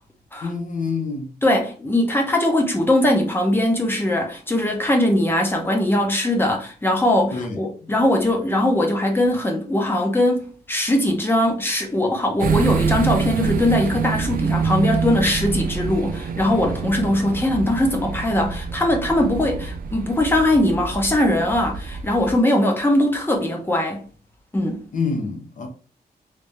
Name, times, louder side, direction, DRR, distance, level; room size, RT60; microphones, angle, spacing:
voice 1, 0.4-1.3 7.3-7.9 24.9-25.7, left 4 dB, 50° left, 0.8 m, -27 dB
voice 2, 1.4-24.0 24.5-24.8, left 1 dB, 15° left, 0.7 m, -20 dB
sound 1, 12.4-22.4, right 6 dB, 60° right, 0.4 m, -26 dB
3.3 x 2.7 x 3.3 m
wide cardioid pair, 175°, 17 cm